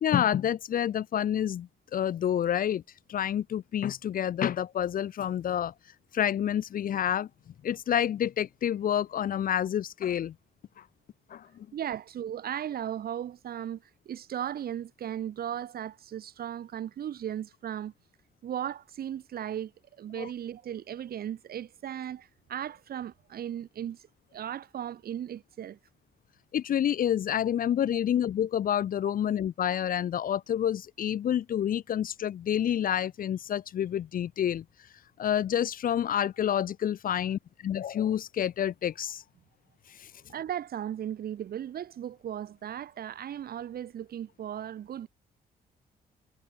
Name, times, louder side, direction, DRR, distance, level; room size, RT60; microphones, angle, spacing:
voice 1, 0.0-2.8 3.1-5.7 6.1-7.3 7.6-10.3 11.3-11.7 20.2-20.3 26.5-34.6 35.2-39.2 40.0-40.1, left 10 dB, 60° left, 0.9 m, -28 dB
voice 2, 11.7-17.9 18.4-19.7 20.0-24.1 24.3-25.8 40.3-45.1, right 10 dB, 70° right, 6.4 m, -36 dB
cardioid pair, 90°, 16 cm